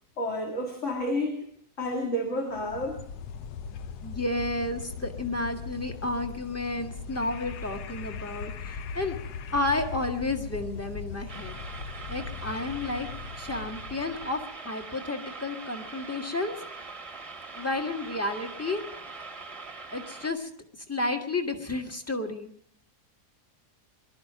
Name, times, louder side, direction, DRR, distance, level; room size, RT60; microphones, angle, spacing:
voice 1, 0.2-1.4 1.8-3.0, left 1 dB, 45° left, 1 dB, 2.5 m, -30 dB
sound 1, 2.5-14.4, left 5 dB, 75° left, 1.3 m, -39 dB
voice 2, 4.0-9.2 9.5-11.6 12.1-13.1 13.4-16.6 17.5-18.8 19.9-20.5 20.9-22.5, left 2 dB, 10° left, 4 dB, 1.6 m, -31 dB
sound 2, 11.3-20.3, right 4 dB, 20° right, 1.2 m, -42 dB
23.0 x 13.0 x 4.9 m, 0.68 s
omnidirectional pair, 1.7 m